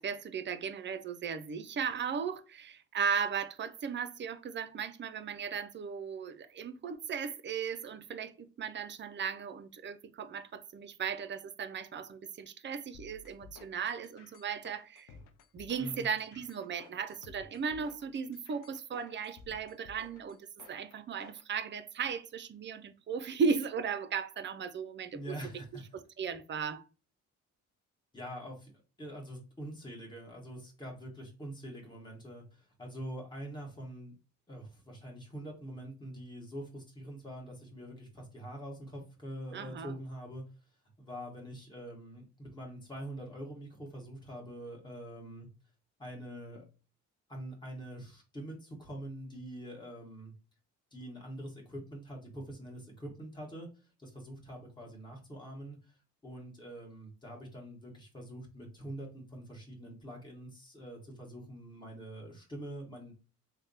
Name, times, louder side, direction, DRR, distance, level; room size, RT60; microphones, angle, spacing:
voice 1, 0.0-15.1 15.5-20.4 20.7-25.4 25.9-26.8 39.5-39.9, right 6 dB, 40° right, 0.5 m, -36 dB
sound 1, 12.9-21.4, left 4 dB, 85° left, 0.6 m, -56 dB
voice 2, 25.1-25.8 28.1-28.7 29.0-34.1 34.5-40.4 41.0-45.5 46.0-46.6 47.3-50.3 50.9-53.7 54.0-55.8 56.2-63.1, right 1 dB, 15° left, 1.5 m, -44 dB
3.4 x 2.2 x 3.9 m
cardioid pair, 90°, 30 cm